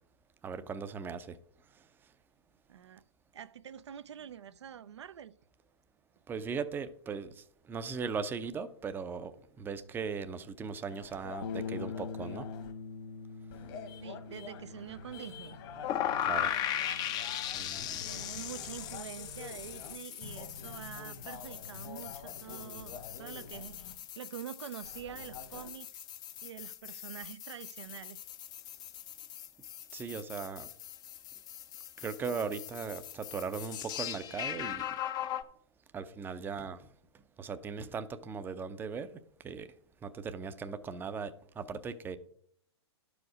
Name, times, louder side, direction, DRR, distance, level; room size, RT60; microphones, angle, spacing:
voice 1, 0.4-1.4 6.3-12.5 16.2-16.6 17.5-18.0 29.9-30.7 32.0-34.9 35.9-36.9 37.4-39.7 40.0-42.2, right 5 dB, 15° right, 0.6 m, -38 dB
voice 2, 2.7-3.0 3.3-5.3 14.0-15.6 18.0-23.9 24.2-26.0 26.4-28.2, right 9 dB, 75° right, 0.5 m, -46 dB
sound 1, 10.9-12.7 13.5-20.0 20.2-23.9 24.8-25.7, left 5 dB, 50° left, 1.5 m, -48 dB
Bass guitar, 11.4-17.7, left 5 dB, 80° left, 0.8 m, -44 dB
sound 2, 15.8-35.4, left 11 dB, 25° left, 0.6 m, -39 dB
11.5 x 5.1 x 4.8 m
hypercardioid pair, 120°, 15 cm